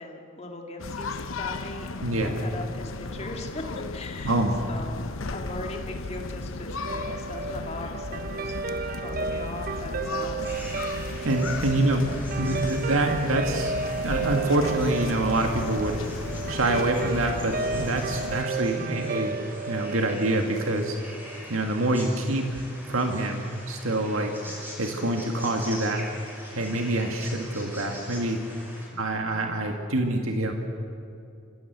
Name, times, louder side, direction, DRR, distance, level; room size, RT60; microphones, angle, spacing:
voice 1, 0.0-3.6 3.9-4.3 4.7-10.6 11.8-11.9 28.9-29.6, left 2 dB, 30° left, 2 dB, 2.3 m, -40 dB
sound 1, 0.8-18.4, left 3 dB, 80° left, 0.9 m, -35 dB
voice 2, 2.0-2.4 4.2-4.5 11.2-12.1 12.4-13.8 14.0-16.0 16.5-19.4 19.7-21.0 21.5-22.5 22.9-24.3 24.8-26.0 26.5-28.4 29.0-30.5, right 1 dB, 90° right, 3 dB, 1.9 m, -26 dB
Guitar, 6.8-21.4, right 4 dB, 45° right, 0.7 m, -33 dB
sound 2, 10.4-28.9, equal, 10° right, 5.5 m, -43 dB
29.5 x 16.5 x 8.1 m, 2.6 s
head